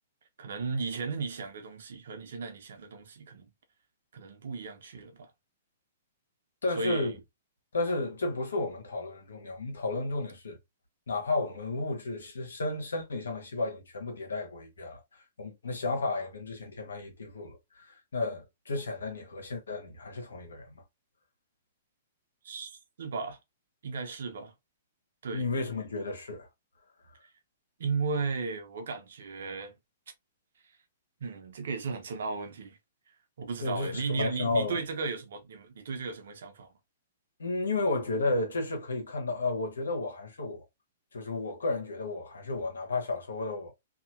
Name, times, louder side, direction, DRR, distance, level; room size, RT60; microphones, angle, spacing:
voice 1, 0.4-3.5 4.1-5.3 6.7-7.1 22.4-23.4 23.8-24.5 25.2-25.5 27.8-29.7 31.2-32.8 33.4-36.7, right 4 dB, 70° right, 0.9 m, -35 dB
voice 2, 6.6-7.1 7.7-10.6 11.1-15.0 15.4-20.7 25.3-26.5 33.6-34.8 37.4-40.6 41.1-43.7, left 2 dB, 80° left, 1.2 m, -32 dB
2.9 x 2.6 x 2.5 m
hypercardioid pair, 125°, 0 cm